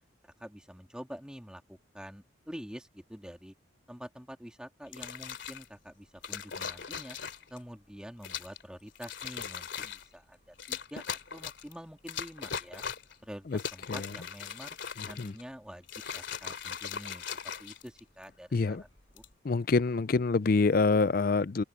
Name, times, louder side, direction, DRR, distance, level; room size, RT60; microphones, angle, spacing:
voice 1, 0.2-3.5 3.9-7.2 7.5-12.8 13.2-14.8 15.1-18.9 19.1-19.2, equal, 5° right, 2.9 m, -47 dB
sound 1, 4.9-5.7 6.2-7.6 8.2-8.6 8.9-10.1 10.6-11.7 12.1-13.1 13.5-15.4 15.8-18.2 19.0-19.3, left 7 dB, 65° left, 2.9 m, -39 dB
voice 2, 15.0-15.3 18.5-18.8 19.4-21.6, left 4 dB, 45° left, 0.4 m, -26 dB
head